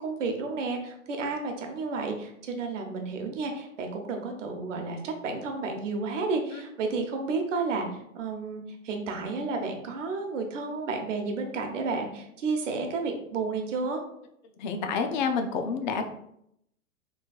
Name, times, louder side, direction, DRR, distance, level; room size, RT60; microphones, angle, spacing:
voice 1, 0.0-14.0, right 4 dB, 60° right, 4 dB, 0.9 m, -31 dB
voice 2, 14.6-16.1, left 5 dB, 35° left, 6 dB, 0.4 m, -28 dB
4.1 x 3.2 x 2.3 m, 0.76 s
hypercardioid pair, 125°, 41 cm